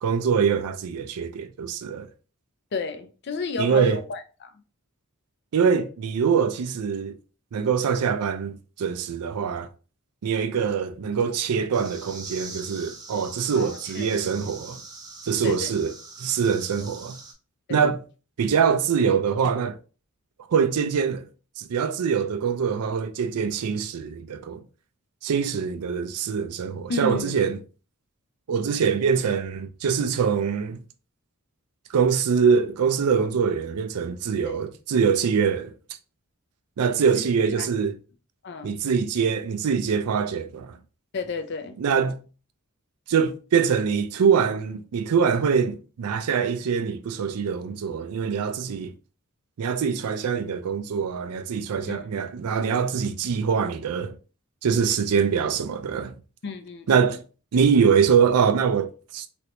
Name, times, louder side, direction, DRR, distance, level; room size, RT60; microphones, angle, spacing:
voice 1, 0.0-2.1 3.6-4.0 5.5-7.1 7.5-9.7 10.2-14.8 15.2-17.2 17.7-18.0 18.4-19.8 20.5-21.2 21.6-24.6 25.2-27.6 28.5-30.8 31.9-35.7 36.8-37.9 38.6-40.8 41.8-42.2 43.1-48.9 49.6-54.2 54.6-56.2 56.9-57.2 57.5-59.3, right 6 dB, 85° right, 0.4 m, -24 dB
voice 2, 2.7-4.5 13.5-14.1 15.4-15.7 17.7-17.8 26.9-27.4 34.4-34.6 37.1-37.2 37.6-37.7 38.4-38.8 41.1-41.8 51.9-52.1 56.4-57.0, left 3 dB, 50° left, 0.4 m, -32 dB
sound 1, 11.7-17.3, right 3 dB, 15° right, 0.5 m, -42 dB
3.2 x 2.6 x 2.8 m
head